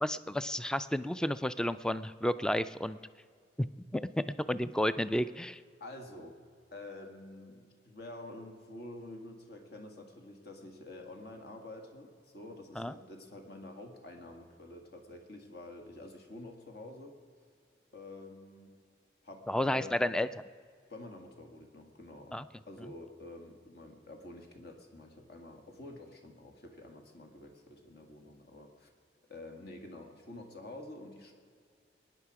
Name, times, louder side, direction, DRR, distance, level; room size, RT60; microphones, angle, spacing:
voice 1, 0.0-3.0 3.6-3.7 3.9-5.6 12.8-12.9 19.5-20.3 22.3-22.4, left 1 dB, 5° left, 14 dB, 0.3 m, -31 dB
voice 2, 5.8-6.4 6.7-17.2 17.9-18.7 19.2-20.0 20.9-22.4 22.7-28.9 29.3-31.3, left 2 dB, 60° left, 4 dB, 1.8 m, -48 dB
21.5 x 9.9 x 4.8 m, 2.1 s
head